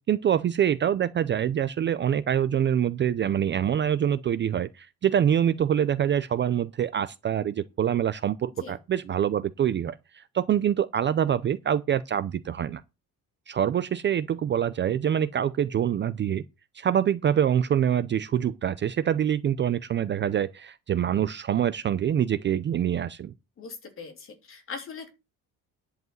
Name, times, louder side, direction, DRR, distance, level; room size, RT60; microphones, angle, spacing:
voice 1, 0.0-12.8 13.5-16.4 16.7-23.3, right 9 dB, 35° right, 0.5 m, -25 dB
voice 2, 23.6-25.1, left 5 dB, 40° left, 3.1 m, -40 dB
11.0 x 4.8 x 7.8 m
cardioid pair, 175°, 34 cm